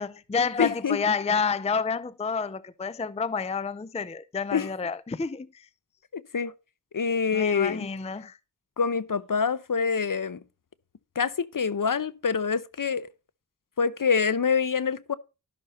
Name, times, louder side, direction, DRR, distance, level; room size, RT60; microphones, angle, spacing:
voice 1, 0.0-5.7 7.3-8.4, left 5 dB, 15° left, 0.5 m, -29 dB
voice 2, 0.6-1.0 4.5-4.7 6.1-6.5 6.9-7.9 8.8-10.4 11.2-13.1 13.8-15.1, left 6 dB, 50° left, 0.8 m, -26 dB
12.0 x 6.5 x 4.3 m
cardioid pair, 45°, 42 cm